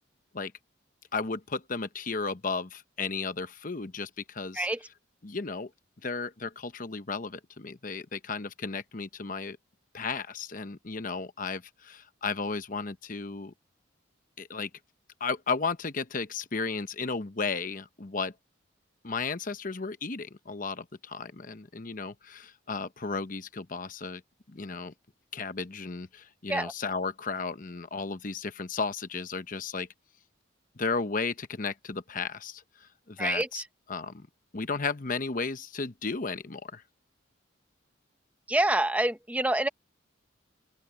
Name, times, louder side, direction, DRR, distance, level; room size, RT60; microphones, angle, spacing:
voice 1, 1.1-4.7 5.2-5.7 6.0-9.6 9.9-13.5 14.4-14.7 15.2-18.3 19.0-24.2 24.5-24.9 25.3-29.9 30.8-33.6 33.9-34.3 34.5-36.8, left 4 dB, 45° left, 0.9 m, -34 dB
voice 2, 33.2-33.6 38.5-39.7, right 1 dB, 5° right, 0.8 m, -27 dB
open air
head